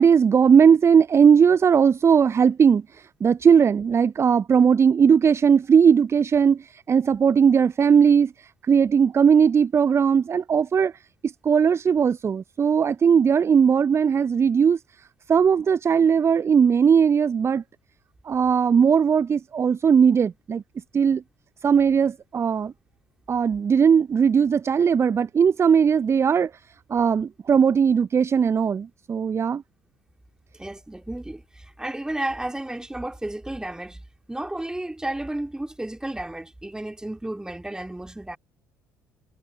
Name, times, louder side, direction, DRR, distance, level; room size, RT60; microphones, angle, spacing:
voice 1, 0.0-10.9 11.2-14.8 15.3-17.6 18.2-20.6 20.9-21.2 21.6-22.7 23.3-26.5 26.9-29.6, right 7 dB, 30° right, 0.6 m, -18 dB
voice 2, 30.6-34.0 34.3-38.4, right 1 dB, 10° right, 3.2 m, -32 dB
figure-of-eight pair, 55°, 9 cm